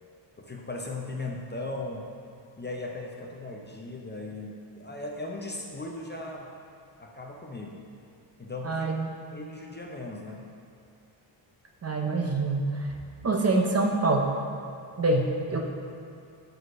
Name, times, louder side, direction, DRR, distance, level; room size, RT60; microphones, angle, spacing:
voice 1, 0.4-2.1 2.6-6.5 7.0-7.8 8.4-8.9 9.3-10.4, left 2 dB, 25° left, 0 dB, 0.5 m, -37 dB
voice 2, 8.6-9.1 11.8-12.9 13.2-14.3 15.0-15.7, right 2 dB, 35° right, 2 dB, 0.6 m, -25 dB
6.4 x 4.7 x 6.2 m, 2.4 s
wide cardioid pair, 155°, 47 cm